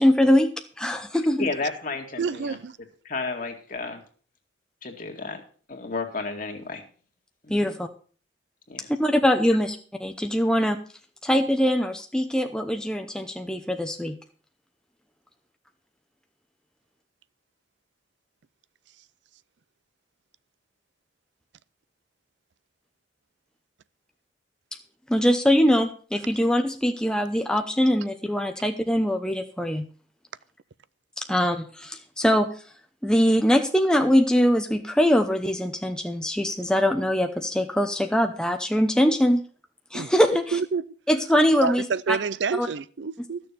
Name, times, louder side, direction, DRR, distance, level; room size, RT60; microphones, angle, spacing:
voice 1, 0.0-1.5 7.5-7.9 8.9-10.8 11.2-14.2 25.1-29.9 31.2-32.5 33.0-39.4 39.9-40.6 41.1-42.2 42.6-42.7, equal, 5° left, 0.7 m, -22 dB
voice 2, 1.4-2.6 3.0-4.0 4.8-5.4 5.7-6.8 7.4-7.7 8.7-8.9, left 3 dB, 45° left, 2.1 m, -32 dB
voice 3, 2.2-2.8 39.9-40.1 40.5-40.8 41.6-43.4, right 5 dB, 70° right, 0.5 m, -28 dB
13.5 x 6.8 x 6.8 m
head